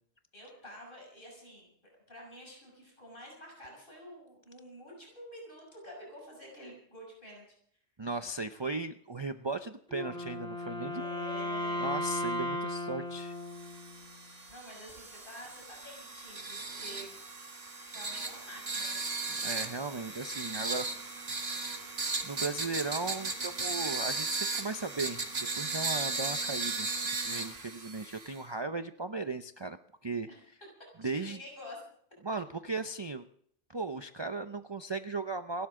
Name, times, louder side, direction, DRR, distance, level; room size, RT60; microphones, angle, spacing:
voice 1, 0.3-1.7 2.1-7.5 10.9-11.9 14.1-17.2 17.9-19.0 30.3-30.4 31.0-31.8, equal, 50° left, -1 dB, 6.8 m, -49 dB
voice 2, 8.0-11.0 11.8-13.4 19.4-20.9 21.6-25.3 25.5-26.9 27.2-29.8 30.0-30.3 31.0-31.4 32.2-33.3 33.7-35.7, right 3 dB, 30° right, 8 dB, 0.6 m, -37 dB
Wind instrument woodwind instrument, 9.9-14.1, left 1 dB, 5° left, 2.4 m, -36 dB
sound 1, 13.5-28.4, right 3 dB, 60° right, 2.0 m, -36 dB
28.5 x 12.5 x 3.8 m, 0.66 s
omnidirectional pair, 1.1 m